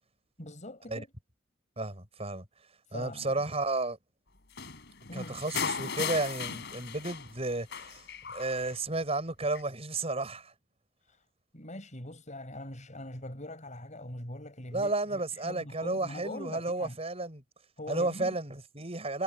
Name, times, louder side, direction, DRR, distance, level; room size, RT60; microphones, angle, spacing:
voice 1, 0.4-1.1 2.9-3.4 5.1-5.6 11.0-11.2 11.5-17.0 17.8-18.4, left 1 dB, 35° left, 7.4 m, -43 dB
voice 2, 1.8-2.4 2.9-4.0 5.1-8.0 8.3-10.5 14.7-17.4 17.9-19.2, right 2 dB, 30° right, 6.0 m, -32 dB
sound 1, 4.6-7.4 7.7-8.7 9.6-9.7, left 6 dB, 60° left, 4.3 m, -36 dB
head